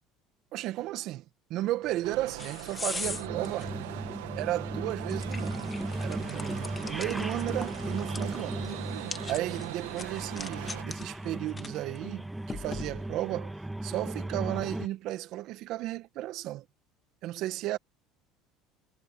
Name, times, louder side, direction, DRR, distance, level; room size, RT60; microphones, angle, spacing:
voice 1, 0.5-1.2 1.5-3.7 4.3-5.7 6.0-8.6 8.9-16.6 17.2-17.8, right 15 dB, 65° right, 1.6 m, -34 dB
sound 1, 1.8-13.3, left 4 dB, 20° left, 1.7 m, -43 dB
sound 2, 2.0-10.8, right 17 dB, 90° right, 1.6 m, -41 dB
sound 3, 3.0-14.9, right 1 dB, 5° right, 1.5 m, -36 dB
supercardioid pair, 100°, 0 cm